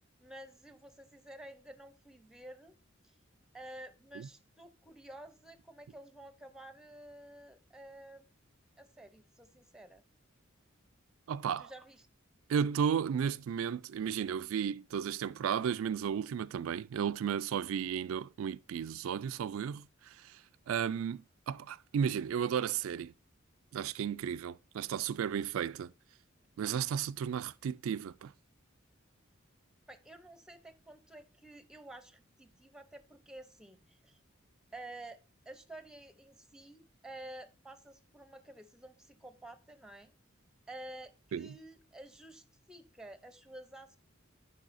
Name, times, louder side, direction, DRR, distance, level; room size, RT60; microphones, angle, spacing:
voice 1, 0.2-2.7 3.0-3.2 3.5-8.3 8.8-10.0 11.6-12.1 29.9-34.2 34.7-35.2 35.5-40.1 40.7-44.0, right 1 dB, 5° right, 0.7 m, -51 dB
voice 2, 11.3-11.7 12.5-20.4 20.7-23.1 23.7-25.9 26.6-28.3 41.3-41.5, right 8 dB, 90° right, 0.3 m, -34 dB
11.0 x 4.8 x 2.6 m
head